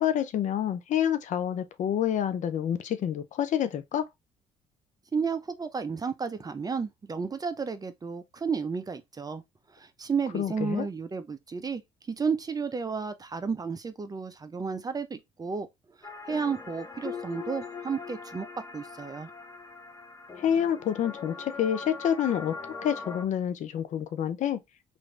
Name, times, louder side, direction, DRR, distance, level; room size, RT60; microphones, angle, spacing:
voice 1, 0.0-4.1 10.3-10.9 20.4-22.6 22.8-24.6, left 9 dB, 55° left, 0.5 m, -28 dB
voice 2, 5.1-9.4 9.7-11.8 12.1-15.7 16.3-18.5 18.7-19.3, right 5 dB, 25° right, 0.6 m, -32 dB
sound 1, 16.0-23.2, left 4 dB, 25° left, 0.8 m, -41 dB
3.1 x 2.6 x 3.2 m
supercardioid pair, 70°, 15 cm